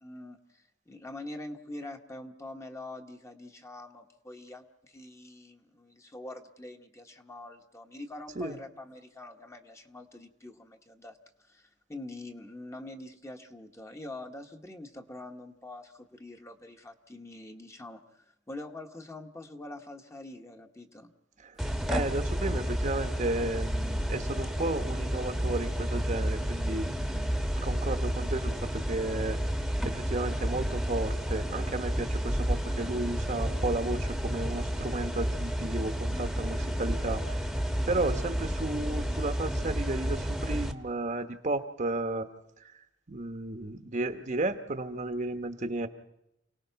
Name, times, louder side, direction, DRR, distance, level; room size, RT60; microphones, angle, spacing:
voice 1, 0.0-11.2 11.5-21.1 36.1-36.6, left 2 dB, 15° left, 4 dB, 1.1 m, -45 dB
voice 2, 21.4-27.3 27.6-29.4 29.8-37.5 37.9-42.3 43.1-45.9, right 2 dB, 40° right, 8 dB, 1.0 m, -33 dB
sound 1, 21.6-40.7, equal, ahead, 1.1 m, -31 dB
29.0 x 18.5 x 5.7 m, 0.83 s
head